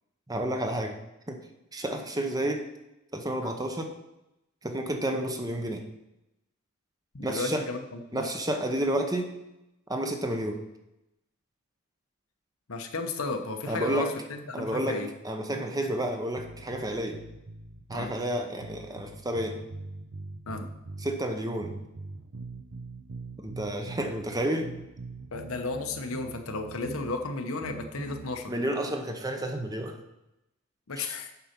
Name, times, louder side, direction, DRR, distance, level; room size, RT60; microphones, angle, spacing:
voice 1, 0.3-1.0 1.3-1.4 1.7-2.7 3.1-3.9 4.6-5.8 7.2-7.7 8.1-9.3 9.9-10.6 13.7-14.1 14.5-17.2 17.9-19.6 21.0-21.8 23.4-24.7 28.5-30.0 31.0-31.2, right 1 dB, 15° right, 5 dB, 0.8 m, -30 dB
voice 2, 7.1-8.3 12.7-15.1 17.9-18.1 20.5-20.7 25.3-28.5 30.9-31.3, left 3 dB, 80° left, 5 dB, 1.0 m, -34 dB
sound 1, 16.4-18.2 18.6-21.2 21.6-24.2 24.6-27.2 27.6-28.3, right 3 dB, 80° right, 0.8 m, -42 dB
8.2 x 5.5 x 5.9 m, 0.91 s
head